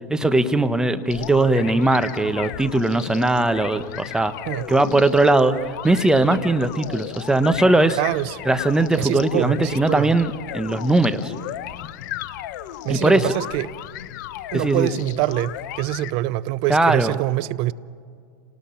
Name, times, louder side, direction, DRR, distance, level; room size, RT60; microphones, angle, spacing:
voice 1, 0.1-4.3 4.7-5.5 5.8-8.0 8.4-11.3 12.9-13.3 14.5-14.9 16.7-17.1, right 2 dB, 5° right, 1.1 m, -19 dB
sound 1, 1.1-16.1, left 13 dB, 65° left, 0.9 m, -35 dB
voice 2, 8.0-8.4 9.0-10.1 12.8-13.7 14.5-17.7, right 17 dB, 50° right, 0.7 m, -25 dB
28.5 x 19.0 x 5.8 m
hypercardioid pair, 110°, 11 cm